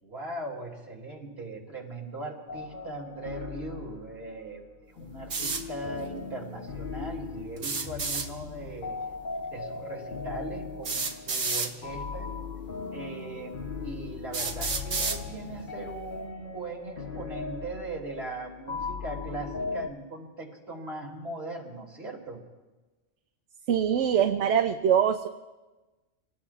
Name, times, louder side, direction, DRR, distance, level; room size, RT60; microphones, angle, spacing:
voice 1, 0.0-4.6 4.9-9.0 9.5-12.3 12.9-22.4, right 2 dB, 55° right, -2 dB, 3.0 m, -39 dB
sound 1, 2.5-19.9, left 5 dB, 45° left, 1.0 m, -38 dB
sound 2, 5.3-5.6 7.6-8.3 9.7-9.8 10.8-11.7 12.7-12.8 13.5-13.6 14.3-15.2, right 4 dB, 90° right, 1.7 m, -30 dB
voice 2, 23.7-25.3, right 8 dB, 70° right, 7 dB, 0.9 m, -23 dB
26.5 x 18.5 x 2.4 m, 1.2 s
omnidirectional pair, 1.3 m